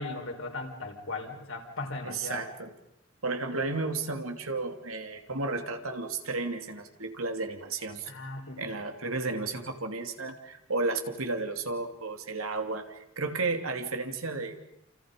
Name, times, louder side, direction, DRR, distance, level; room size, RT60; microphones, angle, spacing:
voice 1, 0.0-2.5 8.1-8.6, left 3 dB, 75° left, 2 dB, 4.8 m, -37 dB
voice 2, 2.0-2.7 3.2-8.1 8.6-14.6, right 3 dB, 85° right, 5 dB, 2.8 m, -33 dB
29.5 x 28.5 x 5.3 m, 0.82 s
head